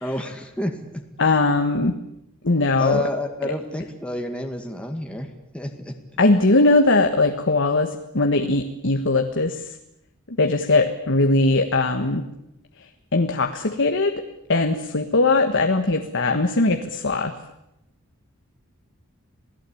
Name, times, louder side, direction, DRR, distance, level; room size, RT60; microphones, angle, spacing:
voice 1, 0.0-1.0 2.8-5.3 5.5-5.9, left 1 dB, 5° left, 2 dB, 2.1 m, -29 dB
voice 2, 1.2-2.0 2.4-3.0 3.4-3.5 6.2-9.7 10.3-12.2 13.1-14.2 14.5-17.3, left 2 dB, 60° left, 5 dB, 1.6 m, -20 dB
27.5 x 18.0 x 8.7 m, 0.84 s
head